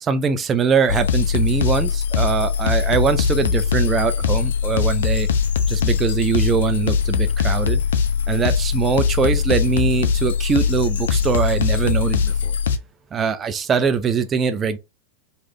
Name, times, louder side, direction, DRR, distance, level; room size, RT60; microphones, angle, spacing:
voice 1, 0.0-5.3 5.7-7.8 8.3-12.6 13.1-14.8, right 6 dB, 25° right, 0.5 m, -22 dB
sound 1, 0.9-12.8, left 6 dB, 60° left, 0.4 m, -21 dB
3.1 x 2.5 x 3.6 m
figure-of-eight pair, 90°, 0 cm